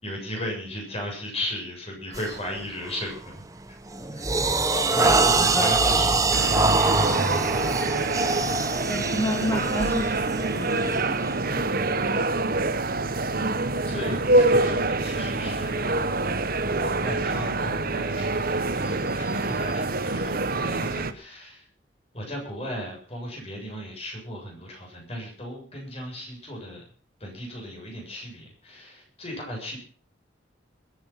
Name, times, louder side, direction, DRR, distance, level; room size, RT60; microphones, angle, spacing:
voice 1, 0.0-3.4 4.1-4.4 4.9-6.3 6.9-7.7 9.5-9.6 13.2-13.3 13.9-16.1 16.8-21.6 22.1-26.8 27.2-29.8, equal, 30° left, 0 dB, 7.5 m, -36 dB
sound 1, 2.1-2.4 2.9-3.2 3.6-11.7, right 3 dB, 15° right, 1.2 m, -24 dB
voice 2, 4.3-6.0 8.8-12.1, left 1 dB, 15° left, 0 dB, 2.7 m, -31 dB
sound 2, 6.3-21.1, right 2 dB, 50° right, 1.2 m, -26 dB
21.0 x 9.7 x 5.8 m, 0.41 s
head